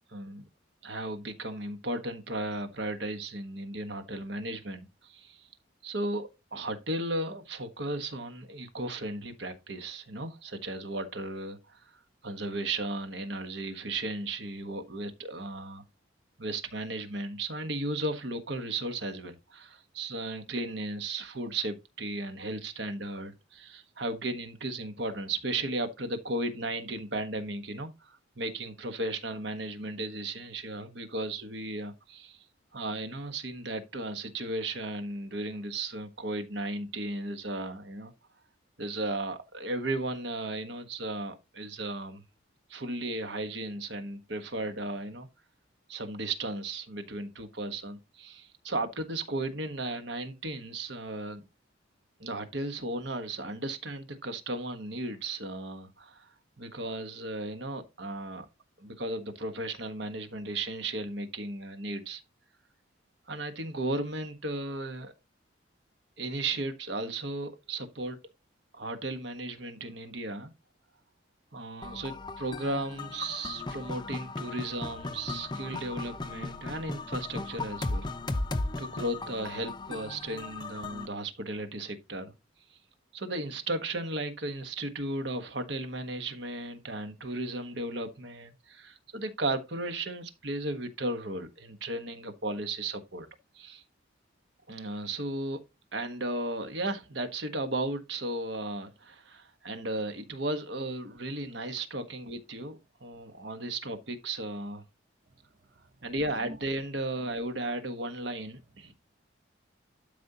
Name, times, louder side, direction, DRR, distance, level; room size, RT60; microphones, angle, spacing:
voice 1, 0.1-0.5 0.8-5.5 5.8-15.8 16.4-32.5 32.7-38.1 38.8-42.2 42.7-45.3 45.9-51.4 52.2-58.5 58.8-62.2 63.3-65.1 66.2-68.2 68.7-70.5 71.5-78.1 78.8-82.3 82.7-82.8 83.1-93.3 93.5-93.8 94.7-95.6 95.9-104.8 106.0-108.9, right 2 dB, 60° right, 1.3 m, -35 dB
sound 1, 71.8-81.1, left 2 dB, 20° left, 0.5 m, -36 dB
voice 2, 105.3-106.1 106.4-106.6 108.8-108.9, right 1 dB, 40° right, 0.8 m, -49 dB
12.0 x 5.2 x 2.9 m
head